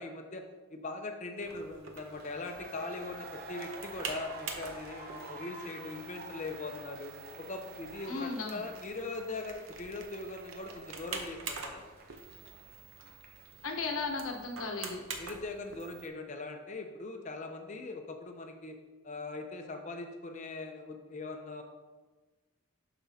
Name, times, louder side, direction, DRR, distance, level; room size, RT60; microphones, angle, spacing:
voice 1, 0.0-7.1 7.4-11.8 15.2-18.8 19.0-21.6, left 3 dB, 35° left, 4 dB, 0.6 m, -41 dB
sound 1, 1.4-16.1, right 4 dB, 80° right, 0.8 m, -46 dB
sound 2, 2.0-13.6, right 2 dB, 45° right, 0.8 m, -49 dB
voice 2, 8.1-8.7 13.6-15.0, left 3 dB, 85° left, 3 dB, 0.9 m, -35 dB
7.3 x 6.0 x 2.8 m, 1.3 s
head